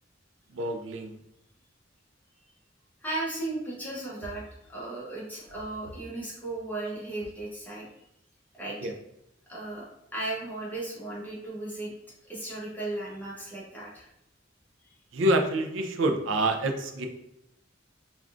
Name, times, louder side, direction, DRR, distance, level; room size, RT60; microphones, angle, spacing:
voice 1, 0.5-1.2 8.8-8.9 15.1-17.1, right 1 dB, 80° right, 5 dB, 0.4 m, -27 dB
voice 2, 3.0-4.4 4.7-7.9 8.5-8.9 9.5-11.9 12.3-14.1, right 2 dB, 10° left, -6 dB, 0.8 m, -36 dB
3.4 x 2.3 x 2.4 m, 0.83 s
head